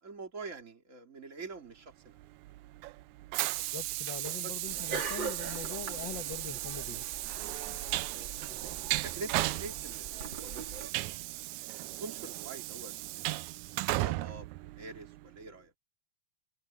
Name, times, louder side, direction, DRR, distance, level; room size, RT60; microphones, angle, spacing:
voice 1, 0.0-2.2 4.4-4.5 8.1-8.4 8.9-11.4 12.0-13.4 13.9-14.5 14.8-15.7, right 3 dB, 25° right, 3.3 m, -45 dB
Train, 2.2-15.4, right 19 dB, 80° right, 1.9 m, -36 dB
voice 2, 3.7-7.0, left 8 dB, 45° left, 1.7 m, -43 dB
sound 1, 4.7-10.9, right 4 dB, 40° right, 2.9 m, -42 dB
omnidirectional pair, 3.5 m